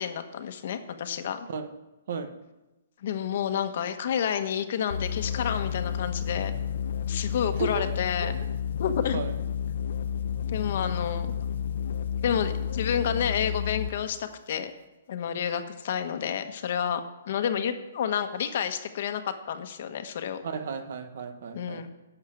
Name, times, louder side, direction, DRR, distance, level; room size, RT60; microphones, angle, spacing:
voice 1, 0.0-1.5 3.0-6.5 7.1-8.3 8.8-9.2 10.5-11.3 12.2-14.7 15.1-20.4 21.5-21.9, left 8 dB, 50° left, 8 dB, 1.2 m, -30 dB
sound 1, 4.9-14.0, left 8 dB, 65° left, 0.6 m, -31 dB
voice 2, 7.6-7.9 8.2-8.5 9.1-9.4 20.4-21.9, right 5 dB, 60° right, 9 dB, 1.3 m, -34 dB
11.0 x 7.3 x 8.8 m, 1.0 s
hypercardioid pair, 160°, 0 cm